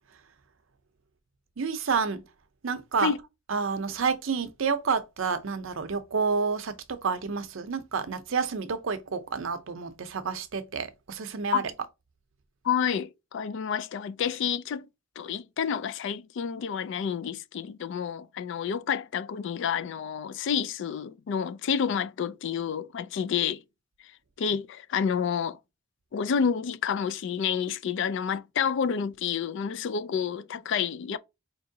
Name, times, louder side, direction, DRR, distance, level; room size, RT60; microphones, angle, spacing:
voice 1, 1.6-2.2 2.6-3.2 3.5-11.7, right 5 dB, 65° right, 0.6 m, -29 dB
voice 2, 12.6-14.9 15.2-23.6 24.4-25.6 26.1-31.2, left 7 dB, 60° left, 0.3 m, -29 dB
4.5 x 2.9 x 2.7 m
head